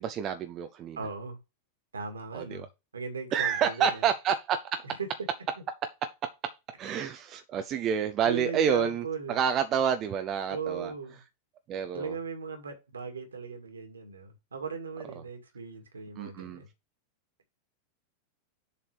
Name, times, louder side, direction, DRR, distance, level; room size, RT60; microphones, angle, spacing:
voice 1, 0.0-1.0 2.3-2.7 3.3-5.0 6.4-6.5 6.8-10.9 11.7-12.1 16.2-16.6, right 8 dB, 30° right, 0.7 m, -29 dB
voice 2, 1.0-1.4 1.9-2.7 2.9-4.1 5.0-5.1 8.2-9.4 10.5-11.2 11.9-16.7, right 5 dB, 75° right, 2.2 m, -38 dB
7.1 x 4.3 x 4.9 m
figure-of-eight pair, 90°, 0 cm